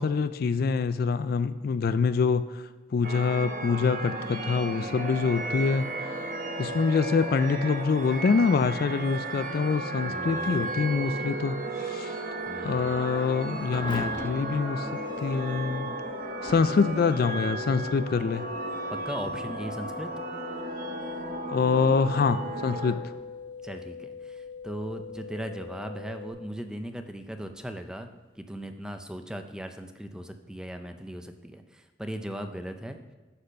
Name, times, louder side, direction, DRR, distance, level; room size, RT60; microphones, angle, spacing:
voice 1, 0.0-6.2 6.6-12.1 12.6-14.9 15.2-15.9 16.4-18.5 21.5-23.0, left 5 dB, 50° left, 12 dB, 0.3 m, -25 dB
sound 1, 3.0-23.0, right 2 dB, 45° right, 0.9 m, -34 dB
voice 2, 10.0-10.9 12.5-13.0 18.9-20.1 23.6-28.1 28.4-33.0, right 1 dB, 5° right, 6 dB, 0.5 m, -38 dB
Thunder / Rain, 12.2-29.0, left 1 dB, 25° left, 1.1 m, -48 dB
sound 2, 14.9-26.3, left 6 dB, 20° right, 2.0 m, -42 dB
9.7 x 4.2 x 6.5 m, 1.3 s
head